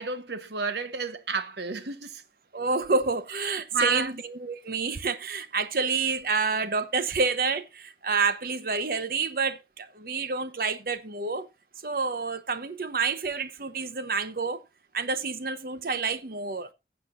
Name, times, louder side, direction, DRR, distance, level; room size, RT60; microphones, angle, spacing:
voice 1, 0.0-2.2 3.7-4.2, right 4 dB, 75° right, 1.1 m, -31 dB
voice 2, 2.5-11.5 11.8-14.6 14.9-16.7, right 4 dB, 55° right, 0.9 m, -28 dB
17.5 x 7.5 x 2.5 m
head